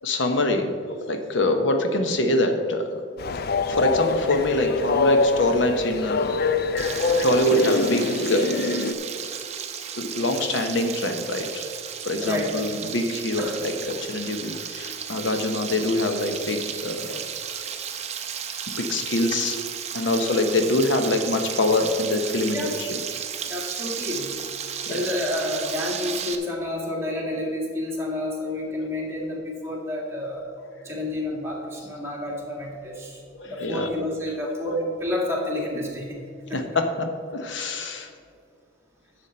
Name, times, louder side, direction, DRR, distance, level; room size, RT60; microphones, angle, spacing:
voice 1, 0.0-3.0 3.7-6.4 7.2-8.6 10.0-11.6 12.0-17.3 17.5-17.6 18.8-19.6 19.9-23.0 24.9-25.1 30.7-30.8 33.3-33.9 36.5-38.1, left 1 dB, 75° left, 6 dB, 0.9 m, -25 dB
Train, 3.2-8.9, left 3 dB, 55° left, 0.5 m, -24 dB
Frying (food), 6.8-26.4, right 8 dB, 35° right, 0.6 m, -34 dB
voice 2, 12.2-12.7 13.4-13.6 22.5-22.7 23.4-24.3 24.9-30.4 30.8-33.2 33.4-36.2 36.5-36.6, left 1 dB, 15° right, -3 dB, 2.0 m, -29 dB
10.5 x 7.0 x 4.3 m, 2.3 s
head